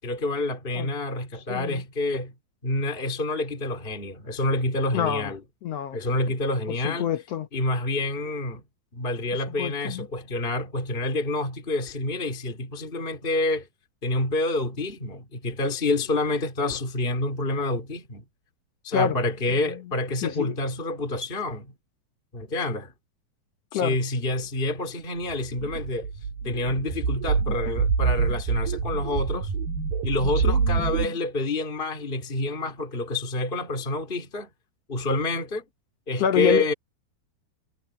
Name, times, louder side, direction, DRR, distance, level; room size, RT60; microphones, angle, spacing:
voice 1, 0.0-2.3 2.6-5.4 5.9-7.1 7.5-8.6 8.9-13.7 14.0-18.2 18.8-21.7 22.3-22.9 23.7-26.1 26.4-29.5 30.0-34.5 34.9-35.6 36.1-36.7, left 2 dB, 15° left, 3.3 m, -28 dB
voice 2, 1.5-1.8 4.9-5.3 5.6-6.0 6.8-7.5 9.6-10.0 18.9-19.1 20.2-20.5 23.7-24.0 30.4-30.8 36.2-36.7, left 9 dB, 80° left, 1.4 m, -26 dB
sound 1, 25.3-31.1, right 5 dB, 85° right, 5.8 m, -26 dB
omnidirectional pair, 4.2 m